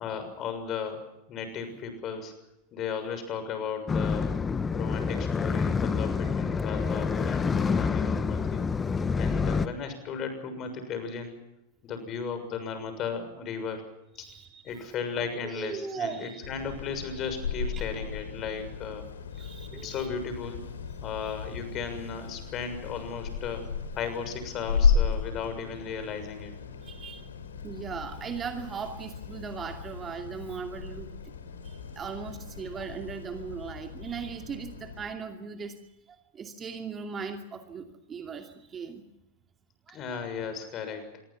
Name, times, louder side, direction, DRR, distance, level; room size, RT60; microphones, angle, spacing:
voice 1, 0.0-2.3 2.7-4.3 4.7-8.6 9.1-11.3 11.8-13.8 14.2-14.3 14.6-19.0 19.8-20.6 21.0-23.7 23.9-26.5 39.9-41.2, left 6 dB, 35° left, 9 dB, 6.7 m, -35 dB
sound 1, 3.9-9.7, left 5 dB, 15° left, 1.2 m, -27 dB
voice 2, 14.2-14.9 15.4-16.4 17.7-17.8 19.3-20.1 21.0-21.3 26.8-27.3 27.6-31.2 31.6-39.1 39.9-40.0 40.9-41.0, right 6 dB, 20° right, 5 dB, 2.5 m, -39 dB
sound 2, 16.4-35.1, left 5 dB, 65° left, 3.8 m, -34 dB
27.0 x 23.5 x 5.9 m, 0.87 s
figure-of-eight pair, 90°, 0 cm